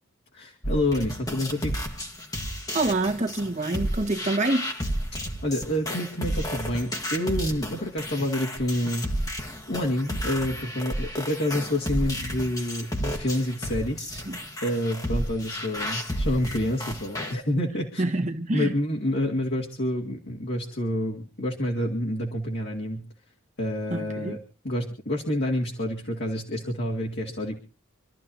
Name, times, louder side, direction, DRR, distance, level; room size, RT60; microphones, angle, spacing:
voice 1, 0.3-1.7 5.4-14.1 14.6-18.0 18.5-23.1 23.6-27.6, left 1 dB, 55° left, 2.2 m, -28 dB
sound 1, 0.6-17.3, equal, 15° left, 1.5 m, -32 dB
voice 2, 2.7-4.7 14.3-14.4 18.0-18.7 23.9-24.4, right 2 dB, 35° right, 1.6 m, -26 dB
27.0 x 13.5 x 2.8 m
head